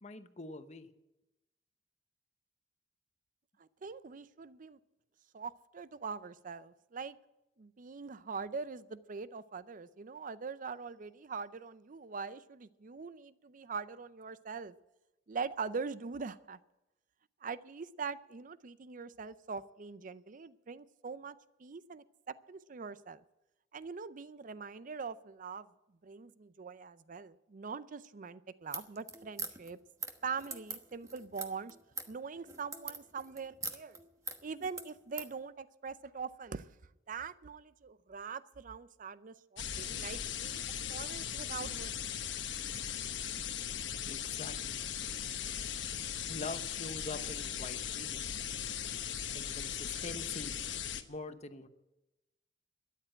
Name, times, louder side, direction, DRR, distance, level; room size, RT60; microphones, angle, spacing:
voice 1, 0.0-0.9 42.7-42.8 43.3-43.4 44.1-44.8 46.3-48.3 49.3-50.6 51.1-51.7, left 3 dB, 40° left, 9 dB, 0.9 m, -44 dB
voice 2, 3.6-4.8 5.3-7.2 7.6-14.8 15.3-16.6 17.4-23.2 23.7-25.7 26.0-29.8 30.2-31.8 32.1-34.0 34.4-36.7 37.1-41.9, right 5 dB, 45° right, 16 dB, 0.5 m, -43 dB
sound 1, 28.6-35.3, right 4 dB, 20° right, 1.1 m, -43 dB
sound 2, 39.6-51.0, left 9 dB, 80° left, 1.0 m, -38 dB
13.5 x 10.0 x 8.8 m, 0.97 s
head